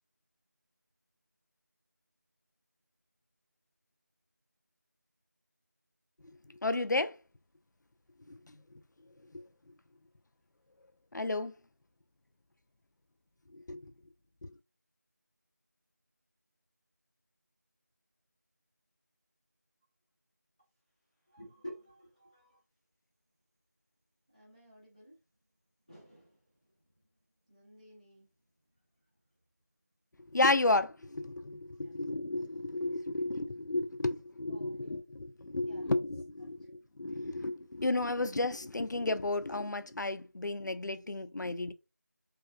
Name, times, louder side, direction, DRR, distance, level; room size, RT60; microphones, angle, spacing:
voice 1, 6.6-7.2 8.3-8.5 9.3-9.4 11.1-11.5 13.5-13.9 30.3-41.7, left 2 dB, 75° left, 0.4 m, -32 dB
voice 2, 21.3-22.6 24.3-25.2 25.9-26.4 27.5-28.3 31.8-31.9 34.5-34.8 35.6-36.0, equal, 20° right, 0.9 m, -52 dB
3.5 x 2.4 x 2.4 m
figure-of-eight pair, 180°, 10 cm